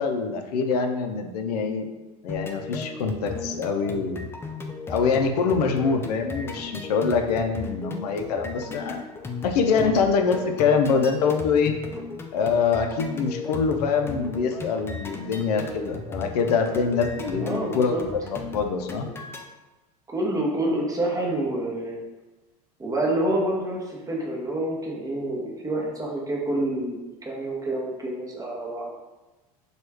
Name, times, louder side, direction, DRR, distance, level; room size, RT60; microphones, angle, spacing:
voice 1, 0.0-1.9 2.2-4.3 4.9-9.0 9.4-11.7 12.3-19.1, left 5 dB, 75° left, 4 dB, 0.4 m, -24 dB
sound 1, 2.3-19.4, left 3 dB, 10° left, 0.3 m, -36 dB
voice 2, 9.7-10.0 17.3-18.0 20.1-22.0 22.8-29.0, right 1 dB, 15° right, -2 dB, 0.8 m, -28 dB
3.0 x 2.3 x 3.3 m, 1.1 s
hypercardioid pair, 90°, 20 cm